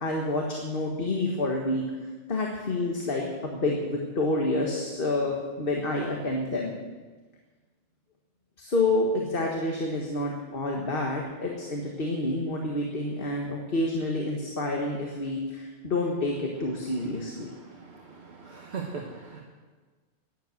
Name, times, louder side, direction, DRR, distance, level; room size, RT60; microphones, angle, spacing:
voice 1, 0.0-1.8 2.3-6.7 8.6-17.5, left 2 dB, 50° left, 0 dB, 1.7 m, -28 dB
voice 2, 18.4-19.4, right 5 dB, 65° right, 0 dB, 1.5 m, -37 dB
12.0 x 10.5 x 7.8 m, 1.4 s
omnidirectional pair, 1.2 m